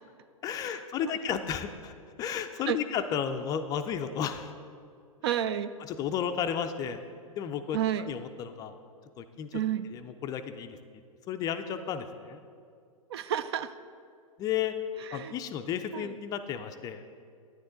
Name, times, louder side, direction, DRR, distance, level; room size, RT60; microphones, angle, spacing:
voice 1, 0.4-4.5 5.8-7.0 7.4-8.7 9.2-9.6 9.9-11.0 11.3-12.4 14.4-14.7 15.1-17.1, left 8 dB, 20° left, 8 dB, 0.4 m, -33 dB
voice 2, 5.2-5.7 7.7-8.1 9.5-9.9 13.1-13.8 15.0-15.3 15.9-16.1, right 10 dB, 45° right, 14 dB, 0.4 m, -31 dB
10.0 x 9.7 x 3.8 m, 2.2 s
figure-of-eight pair, 105°, 18 cm